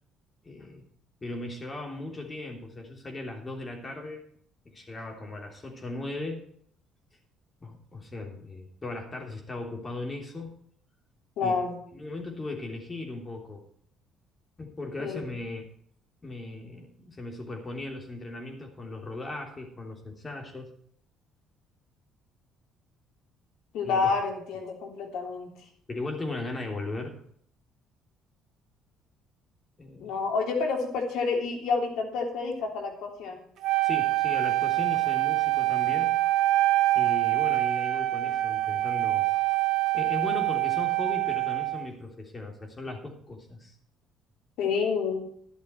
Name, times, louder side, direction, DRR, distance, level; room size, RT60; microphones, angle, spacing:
voice 1, 0.4-0.8 1.2-4.2 4.7-6.4 7.6-10.5 11.4-11.6 11.9-13.6 14.6-15.7 16.2-20.7 23.8-24.1 25.9-27.2 29.8-30.2 33.8-36.2 37.0-39.3 39.9-43.8, left 2 dB, 30° left, 2 dB, 3.3 m, -37 dB
voice 2, 11.4-11.8 15.0-15.3 23.7-25.5 30.0-33.4 44.6-45.2, left 4 dB, 70° left, 2 dB, 3.2 m, -29 dB
Wind instrument woodwind instrument, 33.6-41.9, right 17 dB, 60° right, 0.7 m, -25 dB
12.0 x 11.0 x 4.5 m, 0.62 s
hypercardioid pair, 60°, 0 cm